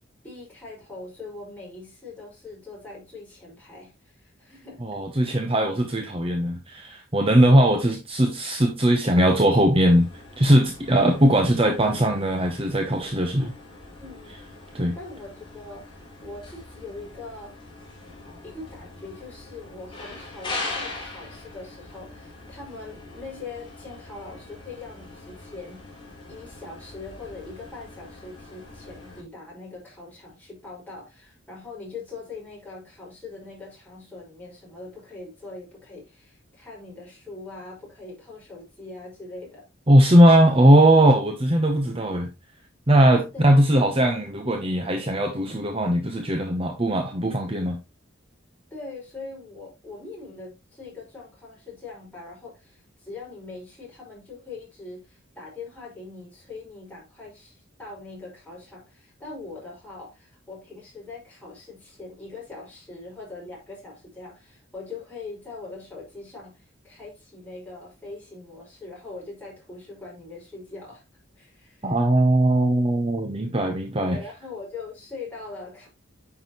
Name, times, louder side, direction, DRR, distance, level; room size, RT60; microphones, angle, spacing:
voice 1, 0.2-4.8 14.0-14.4 14.9-17.5 18.4-26.0 26.3-39.6 43.3-43.6 48.7-71.0 71.4-72.0 73.9-75.9, left 3 dB, 10° left, 5.7 m, -41 dB
voice 2, 4.8-10.1 10.4-13.5 14.7-14.9 39.9-42.3 42.9-47.8 71.8-74.2, right 1 dB, 30° right, 1.0 m, -19 dB
sound 1, 9.9-29.2, left 2 dB, 25° left, 3.6 m, -41 dB
9.3 x 6.1 x 3.1 m
head